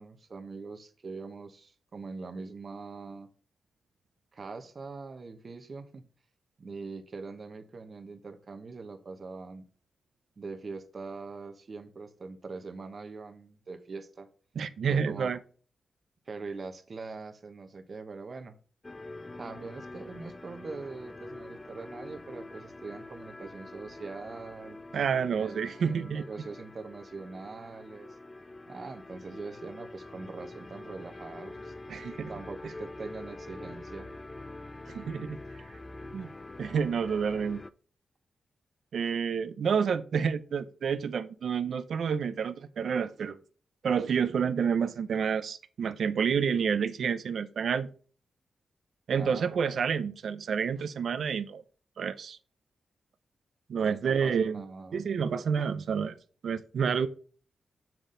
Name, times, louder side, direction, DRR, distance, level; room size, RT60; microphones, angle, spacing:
voice 1, 0.0-3.3 4.3-6.1 6.6-9.6 10.4-14.3 14.9-15.3 16.3-18.6 19.4-24.8 25.4-28.2 28.7-31.7 32.3-34.1 49.1-49.6 53.8-55.0, right 4 dB, 45° right, 1.1 m, -42 dB
voice 2, 14.6-15.4 24.9-26.3 31.9-32.3 34.9-35.4 36.1-36.3 36.6-37.6 38.9-43.4 43.8-47.9 49.1-51.6 52.0-52.4 53.7-54.6 54.9-56.2 56.4-57.1, right 6 dB, 70° right, 0.6 m, -29 dB
sound 1, 18.8-37.7, left 2 dB, 25° left, 0.5 m, -45 dB
7.1 x 6.0 x 3.9 m
cardioid pair, 90°, 0 cm